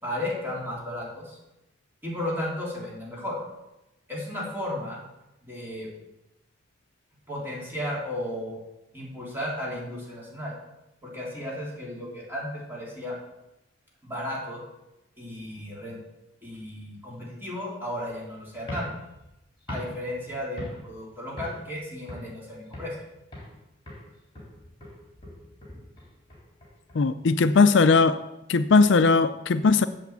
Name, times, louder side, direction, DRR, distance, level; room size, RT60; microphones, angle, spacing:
voice 1, 0.0-1.4 2.0-3.4 4.1-5.0 5.4-5.9 7.3-8.6 8.9-10.5 11.0-13.2 14.0-14.6 15.2-16.0 16.4-18.9 19.7-23.0, left 1 dB, 10° right, -6 dB, 3.8 m, -34 dB
sound 1, 18.6-21.0 21.4-21.7 22.1-23.0 23.3-23.6 23.9-27.0, left 1 dB, 25° left, 3.5 m, -41 dB
voice 2, 26.9-28.2 28.5-29.9, left 4 dB, 65° left, 12 dB, 0.5 m, -19 dB
8.4 x 7.1 x 8.2 m, 0.92 s
head